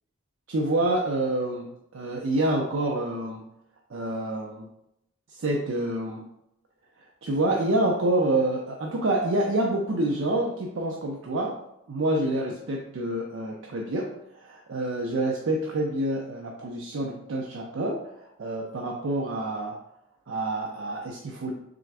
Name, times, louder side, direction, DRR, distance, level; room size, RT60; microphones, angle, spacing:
voice 1, 0.5-3.4 3.9-4.7 5.4-6.2 7.2-11.5 11.9-19.8 20.3-21.5, right 1 dB, 70° right, 0 dB, 0.5 m, -27 dB
3.7 x 3.3 x 3.3 m, 0.82 s
head